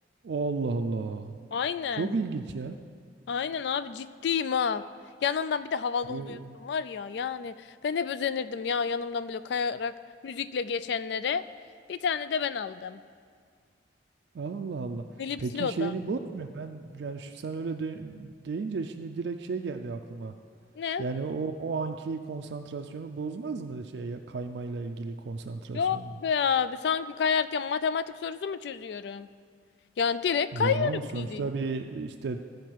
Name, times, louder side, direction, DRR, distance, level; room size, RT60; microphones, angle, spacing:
voice 1, 0.2-1.5 1.9-2.8 6.1-6.6 14.3-15.0 15.4-20.3 21.0-26.1 30.5-32.4, right 4 dB, 70° right, 5 dB, 0.4 m, -33 dB
voice 2, 1.5-2.2 3.3-4.8 5.2-9.9 10.2-11.4 11.9-13.0 15.2-15.9 20.8-21.1 25.7-29.3 30.0-30.9 31.2-31.5, left 6 dB, 65° left, 14 dB, 0.3 m, -29 dB
14.0 x 4.8 x 4.6 m, 2.1 s
head